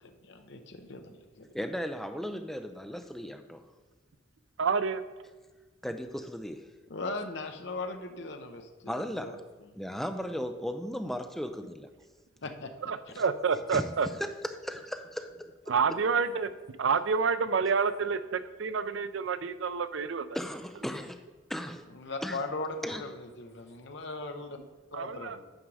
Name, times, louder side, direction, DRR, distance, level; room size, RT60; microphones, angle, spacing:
voice 1, 0.0-1.5 6.9-9.3 12.4-12.7 13.1-13.2 21.9-24.6 24.9-25.4, left 3 dB, 65° left, 6 dB, 0.7 m, -39 dB
voice 2, 1.5-3.6 5.8-6.7 8.9-9.4 9.8-11.9 13.2-13.3 13.7-13.9 14.4-15.7 20.3-21.2 21.5-21.9 22.2-22.4 22.8-23.0, equal, ahead, 7 dB, 0.4 m, -36 dB
voice 3, 4.6-5.0 12.9-14.1 15.7-16.5 16.8-20.3 24.9-25.4, right 5 dB, 80° right, 13 dB, 0.5 m, -28 dB
8.8 x 5.2 x 4.7 m, 1.3 s
head